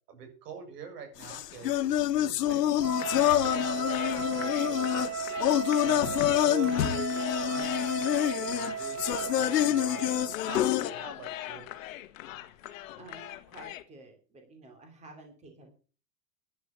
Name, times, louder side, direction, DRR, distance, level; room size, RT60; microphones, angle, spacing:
voice 1, 0.1-2.8 3.2-5.2 5.8-10.1 10.4-11.7, right 5 dB, 75° right, 7 dB, 7.1 m, -45 dB
sound 1, 1.2-10.9, left 13 dB, 80° left, 1.4 m, -27 dB
Wind instrument woodwind instrument, 2.8-10.4, right 6 dB, 40° right, 2.6 m, -35 dB
sound 2, 3.0-13.8, left 14 dB, 55° left, 1.6 m, -41 dB
voice 2, 13.0-15.7, right 2 dB, 15° right, 3 dB, 2.9 m, -51 dB
11.5 x 10.5 x 7.2 m, 0.38 s
supercardioid pair, 165°, 47 cm